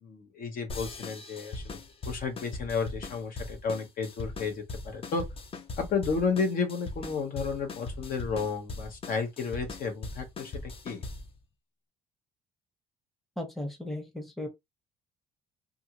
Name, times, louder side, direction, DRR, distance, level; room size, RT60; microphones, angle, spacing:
voice 1, 0.0-1.8 2.0-5.3 5.8-11.0, left 5 dB, 55° left, 0.9 m, -32 dB
sound 1, 0.7-11.4, left 2 dB, 35° left, 0.6 m, -40 dB
voice 2, 13.4-14.5, left 1 dB, ahead, 0.8 m, -36 dB
2.5 x 2.4 x 2.9 m
cardioid pair, 110°, 17 cm